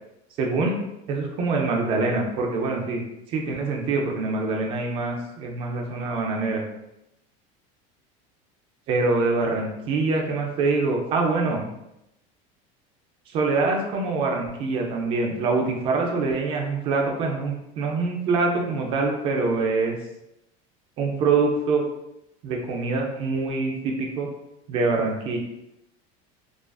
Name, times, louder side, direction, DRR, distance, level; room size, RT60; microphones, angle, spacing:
voice 1, 0.4-0.8 1.1-3.0 3.3-6.6 8.9-11.7 13.3-20.0 21.0-21.8 22.4-24.3 24.7-25.4, right 3 dB, 30° right, 1 dB, 0.3 m, -24 dB
2.4 x 2.3 x 2.2 m, 0.87 s
cardioid pair, 175°, 18 cm